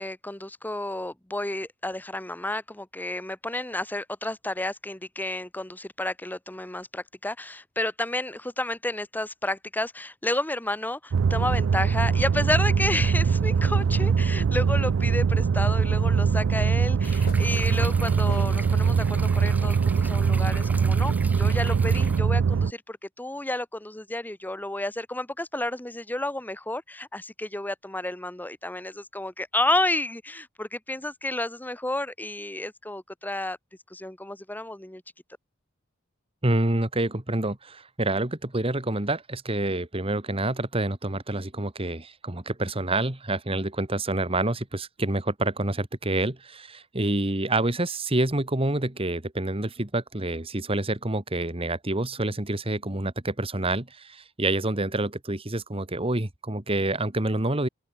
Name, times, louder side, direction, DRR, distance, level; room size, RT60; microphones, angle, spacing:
voice 1, 0.0-33.6 33.9-35.0, left 1 dB, 10° left, 1.3 m, -31 dB
sound 1, 11.1-22.7, right 6 dB, 75° right, 0.4 m, -22 dB
sound 2, 15.8-18.8 19.4-19.5 20.9-21.0, left 3 dB, 50° left, 1.8 m, -47 dB
sound 3, 17.0-22.2, right 2 dB, 10° right, 1.5 m, -42 dB
voice 2, 36.4-57.7, right 2 dB, 30° right, 1.9 m, -27 dB
open air
head